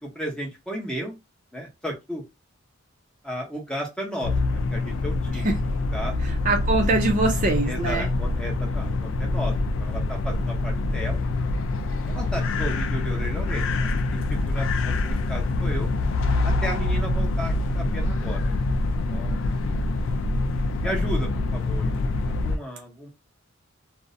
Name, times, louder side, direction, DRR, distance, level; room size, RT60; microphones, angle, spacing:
voice 1, 0.0-1.1 1.5-2.2 3.2-5.5 5.9-6.5 7.7-9.5 9.8-11.2 12.0-15.9 16.4-18.6 19.1-19.5 20.8-21.9 22.3-23.1, equal, 5° left, 0.7 m, -34 dB
sound 1, 4.2-22.6, left 2 dB, 70° left, 0.3 m, -25 dB
voice 2, 6.5-8.1, right 2 dB, 40° right, 0.5 m, -23 dB
2.5 x 2.0 x 2.5 m
head